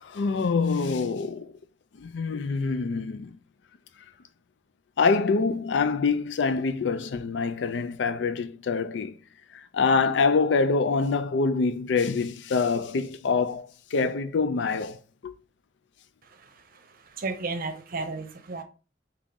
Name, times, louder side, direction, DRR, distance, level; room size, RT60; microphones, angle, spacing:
voice 1, 0.0-1.5 2.0-3.4 5.0-9.2 9.5-15.3, left 4 dB, 70° left, 0.4 m, -25 dB
voice 2, 16.4-16.8 17.1-18.6, right 3 dB, 50° right, 0.6 m, -33 dB
3.8 x 3.0 x 3.5 m
head